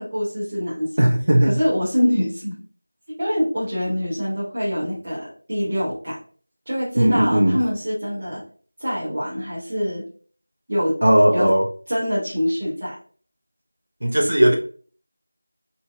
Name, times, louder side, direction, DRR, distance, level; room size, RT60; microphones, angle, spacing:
voice 1, 0.0-1.1 1.4-2.6 3.1-6.2 6.7-8.4 8.8-10.0 10.7-11.0 11.3-11.5 11.9-13.0, equal, 25° right, 0.9 m, -24 dB
voice 2, 1.0-1.6 7.0-7.6 11.0-11.7 14.0-14.5, right 1 dB, 70° right, 0.9 m, -17 dB
2.9 x 2.8 x 3.2 m
figure-of-eight pair, 175°, 0 cm